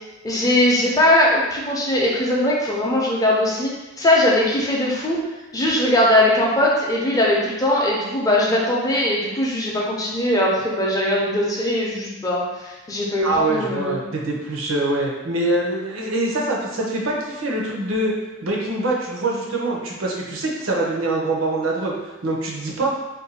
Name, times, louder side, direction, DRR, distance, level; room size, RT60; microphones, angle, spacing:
voice 1, 0.2-3.7 4.0-5.2 5.5-14.0, left 1 dB, 15° left, -4 dB, 0.5 m, -20 dB
voice 2, 13.2-18.1 18.4-21.9 22.2-22.9, right 2 dB, 80° right, -2 dB, 0.7 m, -24 dB
2.6 x 2.2 x 4.1 m, 1.1 s
head